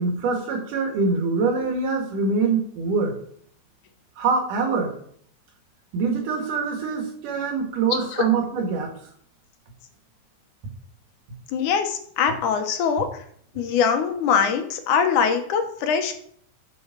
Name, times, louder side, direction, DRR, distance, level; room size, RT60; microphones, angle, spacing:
voice 1, 0.0-3.1 4.2-4.9 5.9-8.9, right 4 dB, 85° right, 3 dB, 3.4 m, -24 dB
voice 2, 11.5-13.2 13.6-16.1, left 6 dB, 75° left, 6 dB, 2.5 m, -22 dB
7.9 x 7.0 x 6.0 m, 0.62 s
omnidirectional pair, 3.6 m